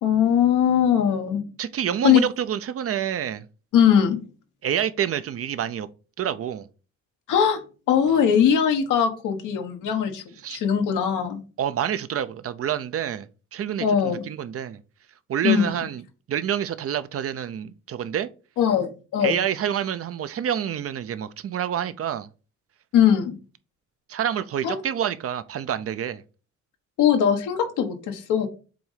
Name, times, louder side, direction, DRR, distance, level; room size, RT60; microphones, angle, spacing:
voice 1, 0.0-1.4 2.0-2.2 3.7-4.2 7.3-7.6 7.9-10.2 10.5-11.4 13.8-14.2 15.4-15.8 18.6-19.4 22.9-23.4 24.6-24.7 27.0-28.5, left 8 dB, 90° left, 1.3 m, -20 dB
voice 2, 1.6-3.4 4.6-5.9 6.2-6.7 10.4-10.6 11.6-14.8 15.3-16.0 16.3-18.3 19.2-22.3 24.1-26.2, right 9 dB, 50° right, 0.6 m, -27 dB
7.7 x 2.7 x 5.0 m
cardioid pair, 90°, 30 cm